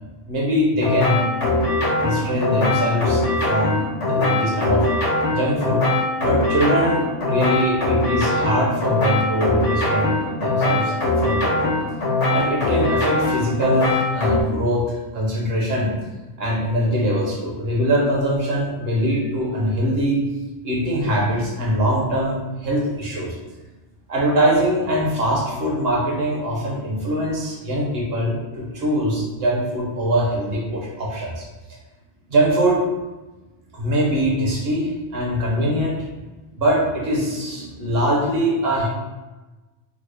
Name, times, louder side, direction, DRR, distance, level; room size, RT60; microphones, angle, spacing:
voice 1, 0.3-1.7 2.0-4.9 5.3-5.8 6.2-11.8 12.3-15.9 16.4-20.2 20.6-23.4 24.1-31.5 32.3-32.8 33.7-36.0 36.5-38.9, equal, 60° right, -3 dB, 1.0 m, -22 dB
sound 1, 0.8-14.4, left 2 dB, 85° left, 1.2 m, -21 dB
3.7 x 2.0 x 3.2 m, 1.2 s
omnidirectional pair, 1.2 m